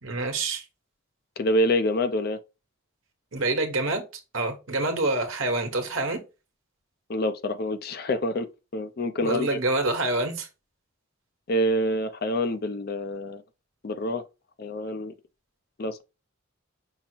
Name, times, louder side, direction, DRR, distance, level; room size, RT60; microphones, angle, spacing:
voice 1, 0.0-0.6 3.3-4.0 4.3-6.2 9.2-10.5, right 2 dB, 70° right, 1.1 m, -26 dB
voice 2, 1.4-2.4 7.1-8.5 8.7-9.6 11.5-13.4 13.8-14.2 14.6-15.1 15.8-16.0, equal, 45° left, 0.5 m, -26 dB
5.5 x 2.0 x 4.4 m
head